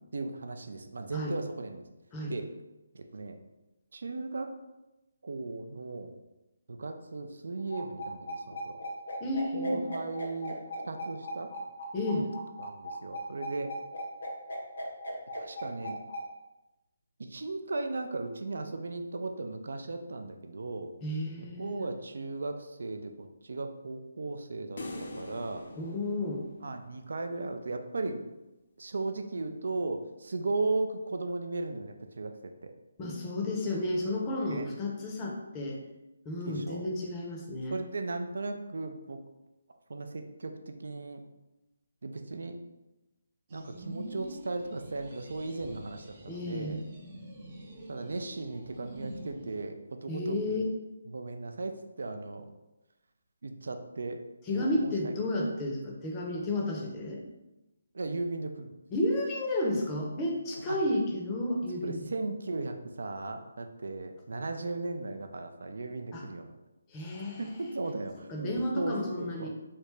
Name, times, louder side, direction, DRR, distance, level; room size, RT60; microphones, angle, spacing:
voice 1, 0.1-1.8 2.3-2.5 2.9-3.4 3.9-4.5 5.2-6.2 6.7-8.8 9.5-10.6 10.8-11.5 12.1-12.2 12.6-13.7 15.3-16.0 17.2-20.9 21.4-25.7 26.6-28.2 28.8-32.7 34.5-34.7 36.5-36.9 37.7-39.2 39.9-41.2 42.0-42.6 43.5-46.8 47.9-50.6 51.1-52.5 53.4-54.2 54.5-55.3 57.9-58.7 60.5-60.8 61.8-66.5 67.4-69.5, right 3 dB, 70° right, 6 dB, 0.4 m, -36 dB
sound 1, 7.7-16.2, equal, 85° left, 0.9 m, -38 dB
voice 2, 9.2-9.8 11.9-12.3 21.0-21.8 25.8-26.4 33.0-35.8 36.2-37.8 46.3-46.8 50.1-50.7 54.5-57.2 58.9-62.1 66.1-66.2 66.9-67.5 68.3-69.5, left 1 dB, 20° left, -1 dB, 0.6 m, -32 dB
sound 2, 24.8-27.2, left 2 dB, 60° left, 0.6 m, -43 dB
sound 3, 43.5-49.6, right 1 dB, 35° right, 0.7 m, -46 dB
3.3 x 2.8 x 3.2 m, 1.0 s
hypercardioid pair, 160°, 0 cm